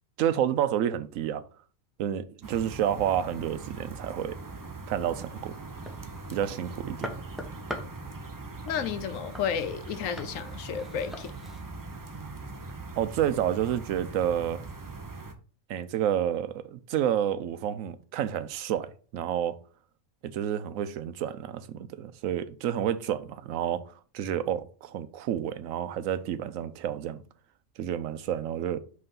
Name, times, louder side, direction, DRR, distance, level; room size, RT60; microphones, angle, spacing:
voice 1, 0.2-1.4 2.0-4.4 4.9-5.5 6.3-7.1 13.0-14.6 15.7-19.5 20.2-23.8 24.1-27.2 27.8-28.8, right 10 dB, 85° right, 1.0 m, -29 dB
sound 1, 2.4-15.3, right 3 dB, 30° right, 0.4 m, -41 dB
sound 2, 5.2-11.6, left 1 dB, ahead, 0.7 m, -44 dB
voice 2, 8.7-11.3, left 8 dB, 85° left, 1.1 m, -32 dB
5.5 x 3.3 x 5.4 m
omnidirectional pair, 1.3 m